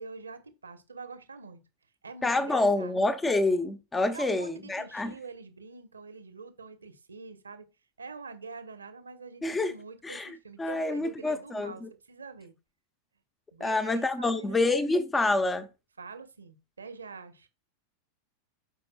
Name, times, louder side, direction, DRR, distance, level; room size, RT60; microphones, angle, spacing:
voice 1, 0.0-1.6 2.0-3.0 4.1-7.6 8.0-11.8 12.1-12.5 13.5-14.9 16.0-17.5, right 4 dB, 75° right, 1.3 m, -45 dB
voice 2, 2.2-5.1 9.4-9.7 10.0-11.9 13.6-15.7, left 2 dB, 10° left, 0.9 m, -27 dB
13.0 x 5.3 x 2.3 m
figure-of-eight pair, 90°, 0 cm